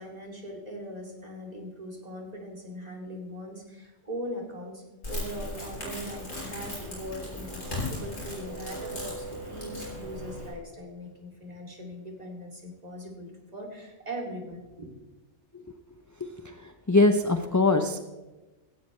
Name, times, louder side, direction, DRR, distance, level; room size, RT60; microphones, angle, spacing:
voice 1, 0.0-14.9, equal, 30° right, 0 dB, 2.7 m, -40 dB
Crackle, 5.0-10.5, left 1 dB, 65° left, 5.5 m, -37 dB
voice 2, 16.9-18.0, left 2 dB, 25° left, 6 dB, 0.4 m, -21 dB
16.5 x 16.5 x 3.2 m, 1.1 s
omnidirectional pair, 1.3 m